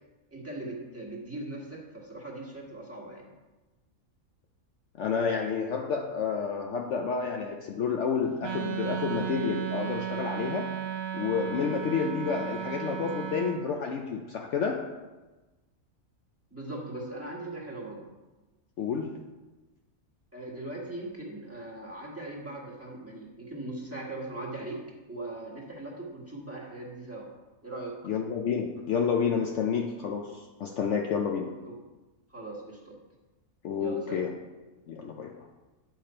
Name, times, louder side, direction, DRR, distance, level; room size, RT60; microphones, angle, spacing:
voice 1, 0.3-3.3 16.5-18.1 20.3-27.3 27.6-28.0 31.6-31.8 32.3-33.0 33.8-34.2, right 2 dB, 10° right, -3 dB, 1.6 m, -39 dB
voice 2, 5.0-10.7 11.1-14.9 18.8-19.1 28.0-31.6 33.6-34.3 34.9-35.4, left 6 dB, 65° left, 2 dB, 0.9 m, -30 dB
Wind instrument woodwind instrument, 8.4-13.6, right 9 dB, 75° right, 1.2 m, -34 dB
8.7 x 5.8 x 4.3 m, 1.2 s
omnidirectional pair, 1.5 m